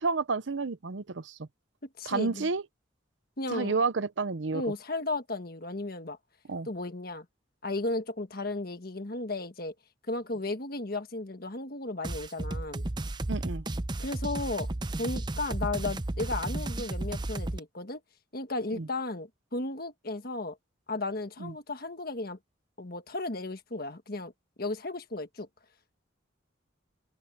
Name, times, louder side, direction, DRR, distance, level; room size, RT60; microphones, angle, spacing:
voice 1, 0.0-1.4 2.1-2.6 3.5-4.6 6.5-6.7 13.3-13.6 18.8-18.9 21.4-21.5, right 4 dB, 70° right, 0.7 m, -30 dB
voice 2, 2.0-2.5 3.4-3.7 4.5-6.2 6.6-7.2 7.6-9.7 10.1-12.9 14.0-14.7 15.0-18.0 18.3-20.6 20.9-22.4 22.8-24.3 24.6-25.5, left 2 dB, 50° left, 1.5 m, -34 dB
sound 1, 12.0-17.6, right 2 dB, 20° right, 0.6 m, -33 dB
open air
head